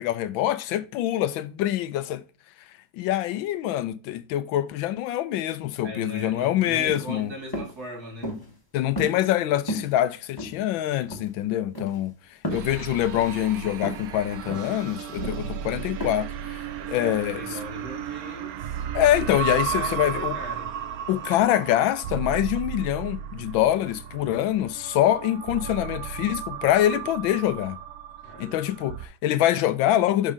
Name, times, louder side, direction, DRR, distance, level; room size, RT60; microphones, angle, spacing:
voice 1, 0.0-2.2 2.9-7.3 8.7-12.1 12.5-17.4 18.9-20.4 21.1-27.8 28.4-30.3, left 12 dB, 85° left, 1.4 m, -25 dB
voice 2, 5.8-8.4 11.4-11.7 16.7-18.9 19.5-20.7 28.2-28.7, equal, 50° right, 2.8 m, -40 dB
sound 1, 6.8-7.1 7.5-7.7 8.2-8.5 9.0-9.4 9.7-9.9 10.4-10.8 11.1-11.3 11.7-12.0 12.4-12.7 13.1-13.3 13.8-14.1 14.5-14.7 15.2-15.5 16.0-16.1, equal, 15° left, 1.2 m, -33 dB
sound 2, 12.5-29.1, right 9 dB, 70° right, 0.9 m, -34 dB
6.3 x 5.3 x 3.6 m
omnidirectional pair, 2.1 m